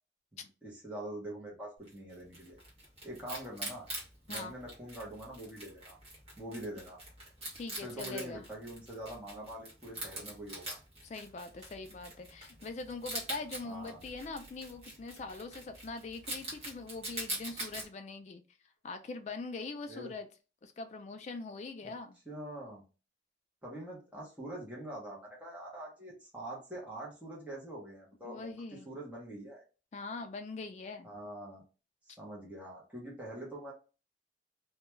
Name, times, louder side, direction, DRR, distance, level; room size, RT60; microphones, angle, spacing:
voice 1, 0.3-2.6 3.0-3.9 4.3-6.0 6.4-7.0 7.8-10.8 13.6-14.0 19.9-20.1 21.8-21.9 22.3-22.8 23.6-28.5 28.8-29.6 31.0-31.6 32.1-33.7, right 1 dB, 10° right, 0.8 m, -44 dB
Wild animals, 1.9-17.9, right 1 dB, 35° right, 1.0 m, -44 dB
voice 2, 7.5-8.5 11.0-18.4 18.8-20.3 20.6-22.2 28.2-28.9 29.9-31.1, left 3 dB, 40° left, 0.3 m, -42 dB
2.2 x 2.2 x 2.9 m
head